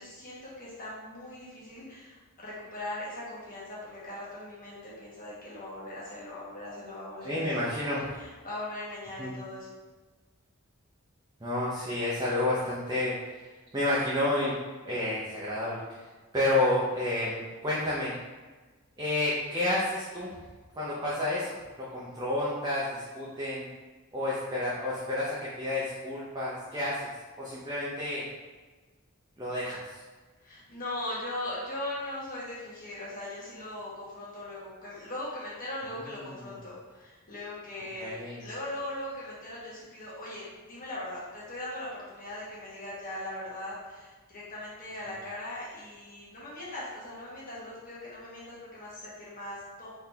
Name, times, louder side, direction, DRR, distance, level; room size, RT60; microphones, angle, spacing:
voice 1, 0.0-9.7 30.4-38.1 38.4-49.9, left 1 dB, 40° left, -8 dB, 1.3 m, -40 dB
voice 2, 7.2-8.0 9.2-9.3 11.4-13.3 13.7-14.5 14.8-16.0 16.3-18.1 19.0-20.3 20.7-23.6 24.1-27.0 27.4-28.2 29.4-30.0 36.3-36.4 38.0-38.4, left 1 dB, 20° right, -7 dB, 0.6 m, -30 dB
4.0 x 3.3 x 2.7 m, 1.3 s
head